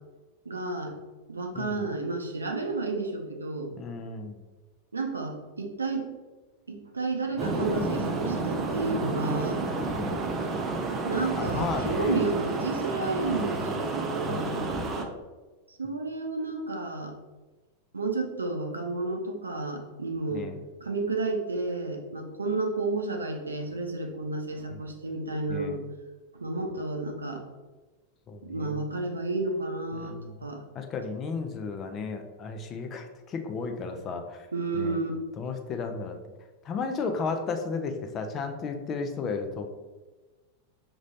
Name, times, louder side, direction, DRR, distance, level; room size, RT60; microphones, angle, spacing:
voice 1, 0.5-0.9 1.3-3.7 4.9-6.0 6.7-9.6 11.0-14.7 15.7-17.1 17.9-20.5 20.8-25.8 26.3-27.4 28.5-30.6 34.5-35.1, right 3 dB, 75° right, 3 dB, 0.6 m, -31 dB
voice 2, 3.7-4.4 9.9-10.3 11.3-12.3 13.4-13.8 14.2-14.7 20.3-20.5 24.7-24.8 25.5-25.8 28.3-28.8 29.9-30.3 30.7-34.5 34.7-35.0 35.4-36.2 36.6-39.7, left 4 dB, 30° left, 5 dB, 0.5 m, -34 dB
sound 1, 7.4-15.0, right 3 dB, 25° right, 0.6 m, -30 dB
5.3 x 3.0 x 2.7 m, 1.2 s
figure-of-eight pair, 90°, 0 cm